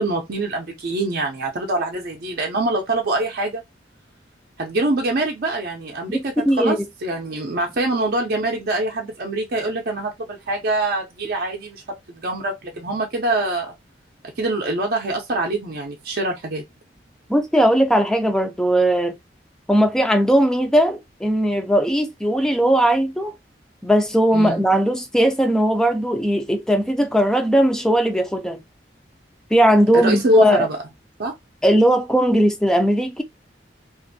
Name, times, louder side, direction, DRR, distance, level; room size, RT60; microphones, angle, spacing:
voice 1, 0.0-3.6 4.6-13.7 14.4-16.6 24.3-24.6 29.9-30.8 31.2-31.3, right 1 dB, 55° right, 0.5 m, -24 dB
voice 2, 6.1-6.8 17.3-19.1 19.7-23.3 23.8-28.6 29.5-30.7 31.6-33.2, equal, 5° left, 0.4 m, -18 dB
2.5 x 2.4 x 2.6 m
head